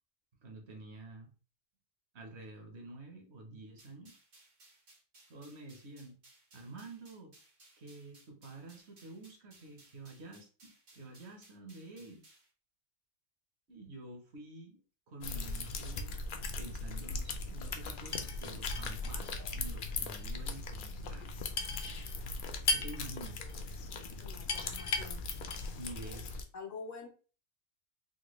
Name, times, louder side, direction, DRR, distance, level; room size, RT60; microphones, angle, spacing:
voice 1, 0.4-1.3 2.1-4.2 5.3-6.2 6.5-7.4 7.8-12.2 13.7-14.8 15.1-16.2 16.6-21.3 22.7-23.5 25.7-26.3, right 2 dB, 65° right, 2 dB, 1.2 m, -49 dB
sound 1, 3.8-12.5, right 2 dB, 80° right, 1.8 m, -62 dB
sound 2, 15.2-26.4, left 3 dB, 60° left, 0.6 m, -38 dB
voice 2, 24.2-25.2 26.5-27.1, left 4 dB, 80° left, 3 dB, 1.2 m, -46 dB
3.9 x 2.2 x 3.0 m, 0.37 s
omnidirectional pair, 1.3 m